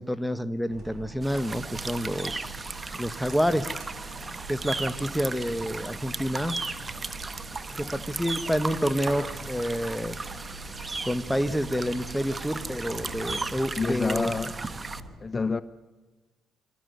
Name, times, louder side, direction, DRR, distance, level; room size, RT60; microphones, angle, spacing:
voice 1, 0.0-3.7 4.5-6.6 7.8-10.2 11.0-14.3, equal, ahead, 1.2 m, -28 dB
sound 1, 0.7-15.1, right 3 dB, 40° right, 6.9 m, -42 dB
sound 2, 1.2-15.0, right 3 dB, 25° right, 1.2 m, -36 dB
voice 2, 13.8-14.6 15.2-15.6, left 4 dB, 30° left, 0.8 m, -27 dB
26.5 x 13.5 x 8.0 m
cardioid pair, 90°, 0 cm